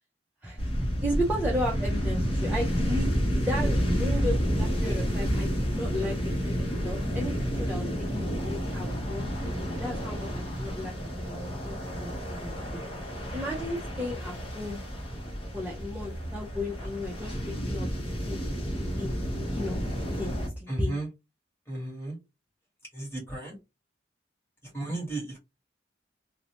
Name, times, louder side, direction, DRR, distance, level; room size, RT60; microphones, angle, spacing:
sound 1, 0.6-20.5, equal, 30° left, 0.8 m, -30 dB
voice 1, 1.0-6.5 6.8-12.1 12.4-12.7 13.3-14.8 15.5-17.9 18.2-18.4 18.7-19.8 20.2-21.0, equal, 10° right, 0.5 m, -34 dB
voice 2, 20.7-21.1 21.7-22.2 22.9-23.6 24.7-25.4, right 2 dB, 10° left, 1.2 m, -34 dB
2.6 x 2.1 x 2.8 m
head